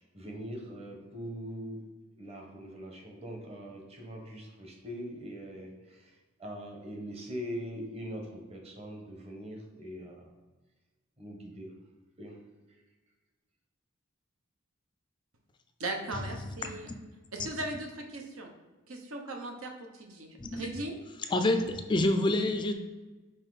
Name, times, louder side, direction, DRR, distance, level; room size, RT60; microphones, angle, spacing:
voice 1, 0.0-1.8 2.2-8.2 8.5-10.3 11.2-11.7 12.2-12.4, equal, 30° right, 0 dB, 1.1 m, -42 dB
voice 2, 15.8-16.9 17.3-18.5 18.9-20.9, right 2 dB, 80° right, 2 dB, 1.0 m, -38 dB
voice 3, 21.3-22.7, left 1 dB, 20° left, 6 dB, 0.4 m, -27 dB
5.5 x 4.4 x 4.0 m, 1.2 s
head